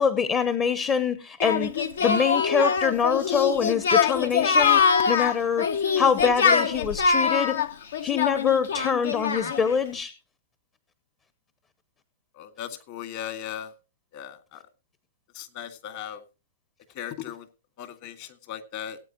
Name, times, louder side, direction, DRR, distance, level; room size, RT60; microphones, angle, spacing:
voice 1, 0.0-1.7 2.0-7.6 8.0-10.1, left 6 dB, 20° left, 12 dB, 0.8 m, -25 dB
Singing, 1.4-9.7, left 6 dB, 75° left, 1.0 m, -23 dB
voice 2, 12.3-13.7 14.1-14.6 15.3-16.2 16.9-17.5 17.8-19.0, left 10 dB, 45° left, 9 dB, 2.0 m, -37 dB
18.5 x 8.6 x 3.0 m, 0.29 s
hypercardioid pair, 120°, 0 cm